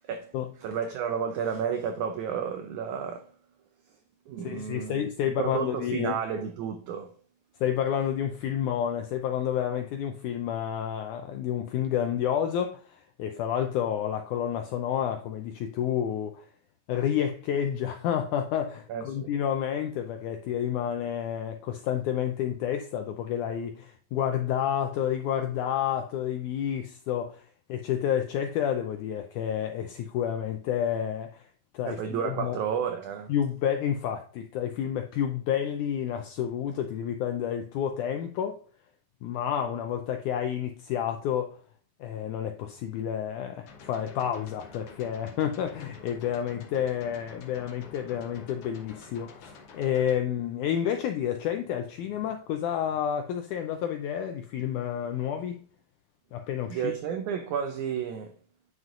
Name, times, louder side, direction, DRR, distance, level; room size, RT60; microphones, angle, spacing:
voice 1, 0.6-3.3 4.3-7.1 18.9-19.3 31.8-33.3 56.7-58.3, right 7 dB, 85° right, 1.7 m, -32 dB
voice 2, 4.4-6.2 7.6-16.5 16.9-31.5 31.7-32.6 33.3-38.6 39.2-41.6 42.0-55.6 56.3-56.9, left 9 dB, 85° left, 1.7 m, -30 dB
sound 1, 43.7-50.1, left 4 dB, 65° left, 1.5 m, -49 dB
9.0 x 6.2 x 2.5 m
omnidirectional pair, 4.1 m